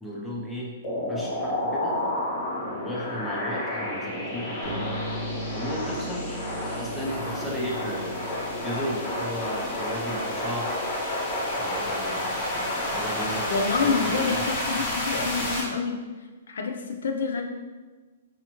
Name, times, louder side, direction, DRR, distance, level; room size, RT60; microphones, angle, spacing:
voice 1, 0.0-0.7 1.1-2.0 2.6-4.9 5.5-8.2 8.6-10.8 11.6-13.5 13.8-14.4, equal, ahead, -6 dB, 0.4 m, -34 dB
sound 1, 0.8-15.6, left 1 dB, 15° left, 0.8 m, -30 dB
sound 2, 4.6-10.7, right 1 dB, 60° right, 0.6 m, -38 dB
voice 2, 13.5-16.0 16.5-17.4, left 5 dB, 85° left, 3 dB, 0.5 m, -27 dB
4.1 x 2.5 x 2.9 m, 1.3 s
hypercardioid pair, 180°, 0 cm